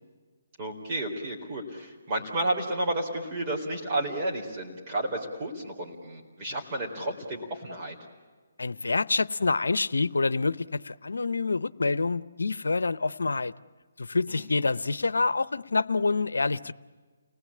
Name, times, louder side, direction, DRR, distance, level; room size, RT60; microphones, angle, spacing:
voice 1, 0.6-8.0 14.3-14.6, right 1 dB, 35° right, -1 dB, 4.1 m, -32 dB
voice 2, 8.6-13.5 14.0-16.7, left 3 dB, 80° left, 18 dB, 0.7 m, -27 dB
30.0 x 19.0 x 8.7 m, 1.5 s
figure-of-eight pair, 150°, 0 cm